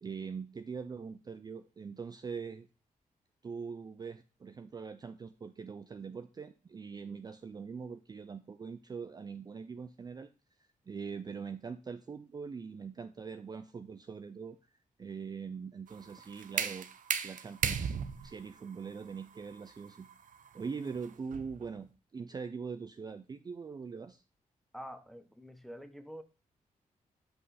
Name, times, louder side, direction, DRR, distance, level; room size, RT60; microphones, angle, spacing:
voice 1, 0.0-2.7 3.4-10.3 10.9-14.6 15.0-16.9 17.2-17.9 18.2-20.1 20.5-24.2, right 5 dB, 30° right, 10 dB, 0.4 m, -42 dB
sound 1, 15.9-21.6, right 7 dB, 70° right, 0.7 m, -37 dB
voice 2, 24.7-26.2, equal, ahead, 9 dB, 0.9 m, -47 dB
7.9 x 5.3 x 4.1 m, 0.33 s
wide cardioid pair, 140°, 14 cm